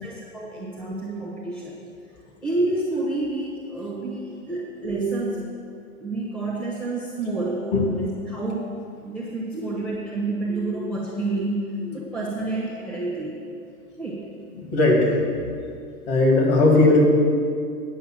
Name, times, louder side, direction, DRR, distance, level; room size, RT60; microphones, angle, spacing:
voice 1, 0.0-1.8 2.4-5.5 6.0-8.7 9.0-13.4 14.0-14.3, right 2 dB, ahead, -5 dB, 1.0 m, -29 dB
voice 2, 10.5-10.9 11.8-12.0 14.5-15.1 16.1-17.0, left 2 dB, 45° left, 0 dB, 2.5 m, -19 dB
9.1 x 5.6 x 7.7 m, 2.3 s
hypercardioid pair, 140°, 44 cm